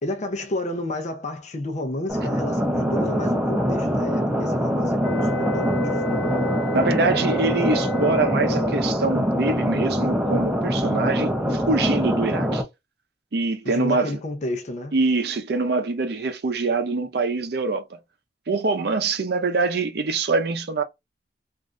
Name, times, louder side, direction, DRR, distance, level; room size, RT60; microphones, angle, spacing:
voice 1, 0.0-6.3 13.6-15.0, left 1 dB, 40° left, 0.5 m, -31 dB
sound 1, 2.1-12.6, equal, 10° right, 0.5 m, -24 dB
sound 2, 5.0-8.9, left 1 dB, 90° left, 0.4 m, -31 dB
voice 2, 6.7-12.6 13.3-14.1 14.9-17.8 18.5-20.8, right 3 dB, 60° right, 0.6 m, -24 dB
3.2 x 2.5 x 2.5 m
head